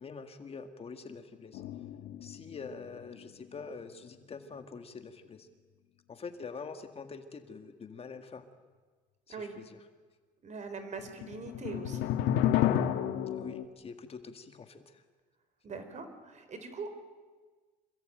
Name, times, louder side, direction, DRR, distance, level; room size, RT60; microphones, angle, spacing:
voice 1, 0.0-1.6 2.2-5.5 6.1-8.5 9.3-9.8 13.4-15.0, left 5 dB, 35° left, 7 dB, 2.0 m, -45 dB
sound 1, 1.5-3.2 3.6-3.7 11.0-13.6, left 11 dB, 90° left, 1.7 m, -31 dB
voice 2, 10.4-12.1 15.6-16.9, right 4 dB, 45° right, 9 dB, 4.1 m, -42 dB
26.5 x 22.5 x 9.2 m, 1.4 s
cardioid pair, 110°, 17 cm